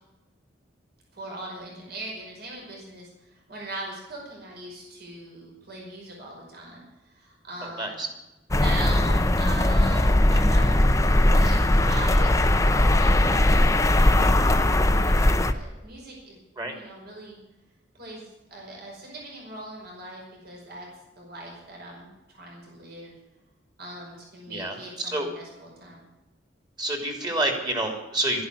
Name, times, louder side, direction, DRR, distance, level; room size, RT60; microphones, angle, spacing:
voice 1, 1.1-8.0 8.5-10.8 11.2-12.4 13.0-14.6 15.0-16.4 16.7-17.4 17.9-20.9 21.2-23.2 23.8-26.0, right 2 dB, 55° right, -2 dB, 5.4 m, -40 dB
voice 2, 7.6-8.1 16.6-16.8 24.5-25.3 26.8-28.5, right 1 dB, 25° right, 3 dB, 3.1 m, -28 dB
sound 1, 8.5-15.5, left 1 dB, 15° left, 0.7 m, -19 dB
12.5 x 11.0 x 8.2 m, 1.0 s
head